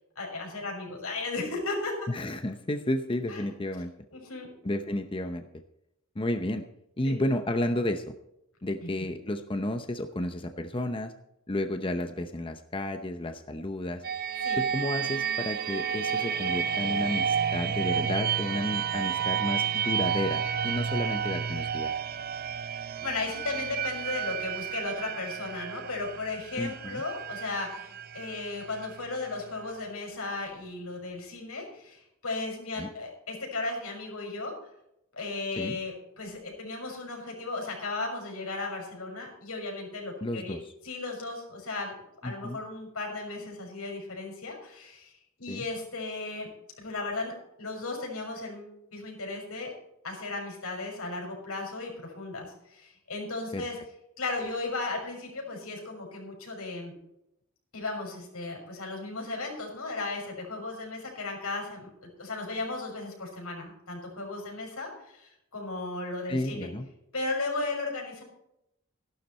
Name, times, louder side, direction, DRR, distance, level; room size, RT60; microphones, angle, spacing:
voice 1, 0.2-1.9 3.3-3.4 4.1-4.5 7.0-7.2 8.8-9.1 14.4-14.6 23.0-34.5 35.1-40.6 40.8-42.0 42.2-45.1 45.4-46.5 46.8-49.7 50.0-53.8 54.2-57.0 57.7-66.7 67.1-68.2, left 3 dB, 85° left, 0 dB, 6.0 m, -35 dB
voice 2, 2.1-3.9 4.6-5.5 6.2-6.6 7.0-8.1 8.6-11.1 11.5-14.0 14.6-21.9 26.6-27.0 32.8-32.9 35.5-35.8 40.2-40.7 42.2-42.6 45.5-45.6 53.5-53.7 66.3-66.9, left 1 dB, 25° left, 7 dB, 0.7 m, -32 dB
sound 1, 14.0-29.7, right 7 dB, 45° right, 0.6 m, -31 dB
15.0 x 11.5 x 4.3 m, 0.81 s
head